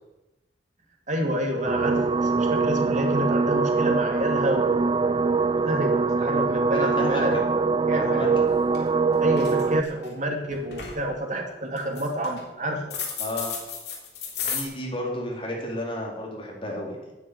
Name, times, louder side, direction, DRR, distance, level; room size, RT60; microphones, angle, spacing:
voice 1, 1.1-5.1 5.4-7.3 7.9-8.3 9.2-13.0, equal, 45° right, 2 dB, 2.5 m, -29 dB
sound 1, 1.7-9.8, right 4 dB, 30° right, 0.4 m, -23 dB
voice 2, 6.7-7.3 7.9-8.3 13.2-13.5 14.4-17.1, left 1 dB, 30° left, -2 dB, 3.8 m, -32 dB
sound 2, 8.3-8.4 8.7-9.0 9.3-10.1 10.5-11.0 11.8-12.4 12.9-14.6, left 6 dB, 65° left, 3.2 m, -33 dB
9.9 x 8.6 x 8.4 m, 1.0 s
head